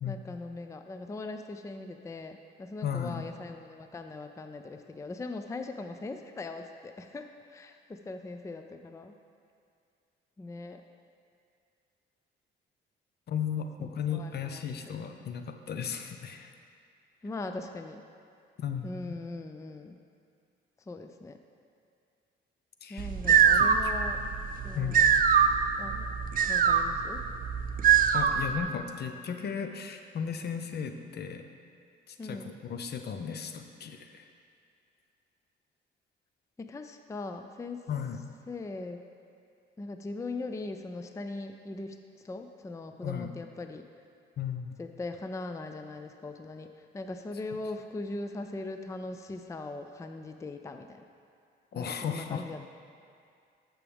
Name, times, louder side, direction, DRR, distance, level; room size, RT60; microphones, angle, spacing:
voice 1, 0.0-9.2 10.4-10.8 13.8-14.7 17.2-18.0 18.8-20.0 20.9-21.4 22.9-24.3 24.6-25.1 25.8-26.1 26.5-27.2 32.2-32.5 36.6-37.9 38.5-39.0 39.8-42.0 42.2-43.8 44.8-51.0 51.7-52.6, left 2 dB, 15° left, 6 dB, 0.4 m, -40 dB
voice 2, 2.8-3.3 13.3-16.5 18.6-19.2 22.8-23.1 23.4-23.9 24.7-25.3 28.1-31.4 32.1-34.3 37.9-38.2 43.0-43.3 44.4-44.7 51.7-52.4, left 7 dB, 55° left, 6 dB, 0.7 m, -35 dB
sound 1, 23.0-28.6, right 7 dB, 45° right, 0.5 m, -23 dB
13.0 x 6.0 x 3.5 m, 2.3 s
cardioid pair, 90°, 20 cm